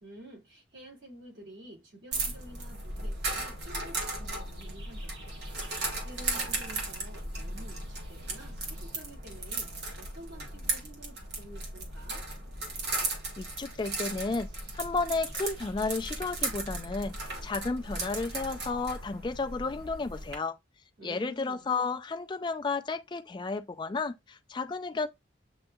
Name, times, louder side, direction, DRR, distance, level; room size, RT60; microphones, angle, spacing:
voice 1, 0.0-5.4 5.7-12.2 21.0-21.6, right 1 dB, 85° right, 2.4 m, -50 dB
sound 1, 2.1-20.3, right 2 dB, 65° right, 1.3 m, -36 dB
voice 2, 13.4-17.1 17.4-20.6 21.0-25.1, left 3 dB, 25° left, 0.3 m, -32 dB
7.8 x 2.7 x 2.3 m
head